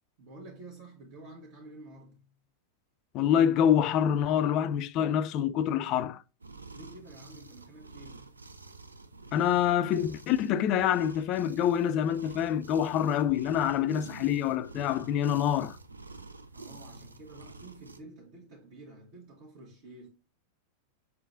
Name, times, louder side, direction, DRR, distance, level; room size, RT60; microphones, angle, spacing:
voice 1, 0.2-2.3 6.7-8.4 16.5-20.1, right 2 dB, 50° right, 1.4 m, -49 dB
voice 2, 3.1-6.2 9.3-15.8, left 9 dB, 40° left, 0.3 m, -26 dB
sound 1, 6.4-18.0, right 3 dB, 80° right, 0.4 m, -48 dB
5.6 x 3.6 x 2.5 m
figure-of-eight pair, 90°, 0 cm